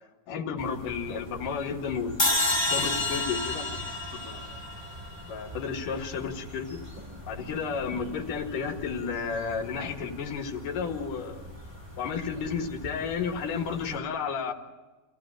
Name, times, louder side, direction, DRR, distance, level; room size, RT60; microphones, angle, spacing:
voice 1, 0.3-4.6 5.2-6.8 7.3-11.4 12.0-14.5, left 6 dB, 75° left, 4 dB, 3.3 m, -32 dB
sound 1, 0.6-14.0, equal, 10° right, 6.1 m, -44 dB
sound 2, 2.2-5.4, left 2 dB, 10° left, 1.7 m, -28 dB
26.5 x 15.5 x 8.8 m, 1.2 s
omnidirectional pair, 3.8 m